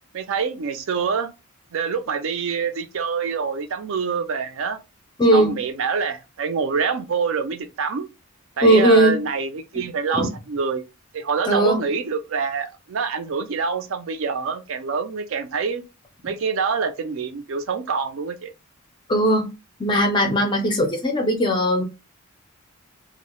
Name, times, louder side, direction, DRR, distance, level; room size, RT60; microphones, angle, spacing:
voice 1, 0.1-1.3 1.7-4.8 5.3-8.1 8.6-10.8 11.1-15.8 16.2-18.5, right 5 dB, 65° right, 0.4 m, -26 dB
voice 2, 5.2-5.5 8.6-9.2 11.5-11.8 19.1-19.5 19.8-21.8, right 1 dB, 20° left, 0.4 m, -18 dB
2.1 x 2.0 x 2.9 m
head